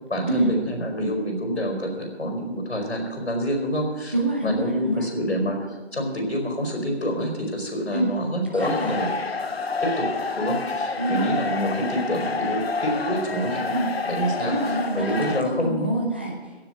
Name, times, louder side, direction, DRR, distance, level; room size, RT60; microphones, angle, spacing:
voice 1, 0.1-4.1 4.4-5.6 5.9-9.1 9.8-10.1 10.3-13.7 14.0-14.5 14.9-15.9, equal, 85° left, 3 dB, 4.9 m, -27 dB
voice 2, 4.1-5.1 7.9-8.1 8.5-8.9 11.0-11.3 13.7-13.9 14.4-16.5, right 1 dB, 10° right, -1 dB, 0.8 m, -26 dB
sound 1, 8.6-15.4, left 4 dB, 65° left, 1.1 m, -28 dB
16.0 x 7.5 x 7.4 m, 1.2 s
figure-of-eight pair, 165°, 33 cm